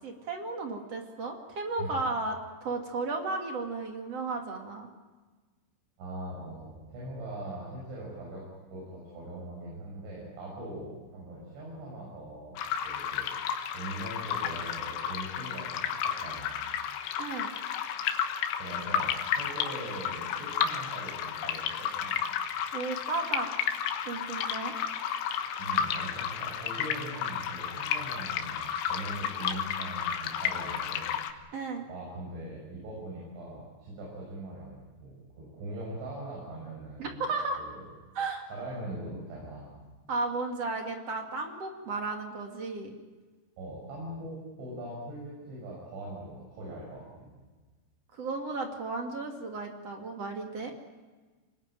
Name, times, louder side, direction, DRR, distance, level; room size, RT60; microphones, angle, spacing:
voice 1, 0.0-4.9 17.2-17.5 22.7-23.5 24.0-24.7 31.5-31.9 37.0-37.6 38.1-38.5 40.1-42.9 48.1-50.7, right 3 dB, 40° right, 3 dB, 2.8 m, -34 dB
voice 2, 6.0-12.6 12.8-13.5 13.7-16.7 18.6-22.2 25.5-31.2 31.4-31.6 31.9-37.3 37.6-37.8 38.5-39.8 43.6-47.3, right 1 dB, 85° right, -4 dB, 8.8 m, -41 dB
sound 1, 12.6-31.3, left 8 dB, 80° left, 3.6 m, -32 dB
25.0 x 20.5 x 9.1 m, 1.3 s
omnidirectional pair, 5.3 m